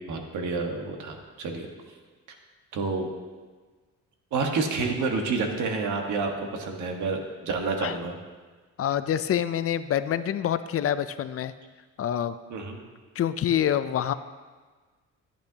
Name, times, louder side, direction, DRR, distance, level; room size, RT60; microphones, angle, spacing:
voice 1, 0.1-1.7 2.7-3.1 4.3-8.2 12.5-12.8, right 4 dB, 75° right, 3 dB, 1.5 m, -29 dB
voice 2, 8.8-11.5 12.0-12.4 13.2-14.1, left 10 dB, 50° left, 12 dB, 0.5 m, -26 dB
14.5 x 8.7 x 2.9 m, 1.4 s
cardioid pair, 90°, 30 cm